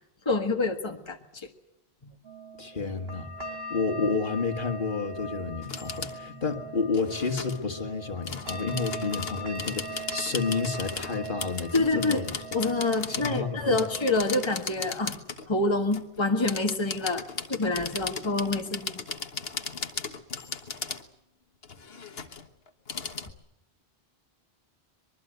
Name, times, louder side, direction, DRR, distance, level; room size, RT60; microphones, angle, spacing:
voice 1, 0.2-1.5 11.7-12.2 12.5-15.1 15.5-17.2 17.5-19.0, left 2 dB, 25° left, 3 dB, 1.6 m, -27 dB
sound 1, 2.2-14.5, right 2 dB, 70° right, 3.9 m, -40 dB
voice 2, 2.6-12.3 13.1-13.8, left 4 dB, 55° left, 6 dB, 2.0 m, -30 dB
sound 2, 5.6-6.2 6.9-7.6 8.2-13.4 13.7-15.5 15.9-21.0 21.6-23.3, left 5 dB, 70° left, 1.6 m, -37 dB
24.5 x 22.0 x 8.1 m, 0.80 s
omnidirectional pair, 1.1 m